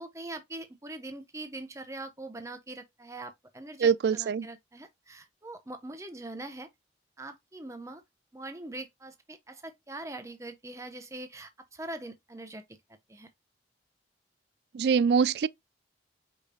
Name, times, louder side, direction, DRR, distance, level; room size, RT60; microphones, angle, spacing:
voice 1, 0.0-6.7 7.2-8.0 8.3-12.6 13.1-13.3, right 2 dB, 15° right, 0.8 m, -42 dB
voice 2, 3.8-4.5 14.7-15.5, right 6 dB, 65° right, 0.3 m, -24 dB
5.1 x 4.0 x 2.2 m
head